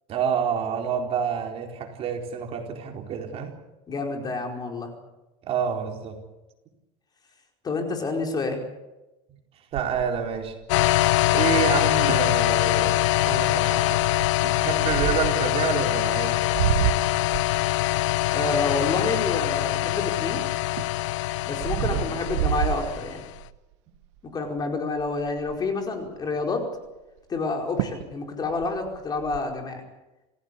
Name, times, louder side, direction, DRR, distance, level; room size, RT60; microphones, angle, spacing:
voice 1, 0.1-3.5 5.4-6.2 9.7-10.6 11.3-12.9 13.2-14.0 14.4-16.4 21.9-22.2, right 7 dB, 40° right, 2 dB, 4.3 m, -28 dB
voice 2, 3.9-4.9 7.6-8.6 18.3-20.4 21.5-23.2 24.3-26.7 27.3-29.8, left 3 dB, 25° left, 3 dB, 4.8 m, -28 dB
sound 1, 9.7-11.2 11.8-11.9 12.1-12.3 12.9-13.2 14.0-15.5 16.2-20.1 20.5-23.6 24.0-24.3 24.6-24.7 24.9-25.7 27.4-27.5 27.8-28.1 28.4-29.4, right 11 dB, 85° right, 1.4 m, -30 dB
sound 2, 10.7-23.3, left 16 dB, 90° left, 0.9 m, -24 dB
28.0 x 16.5 x 8.4 m, 1.0 s
supercardioid pair, 135°, 15 cm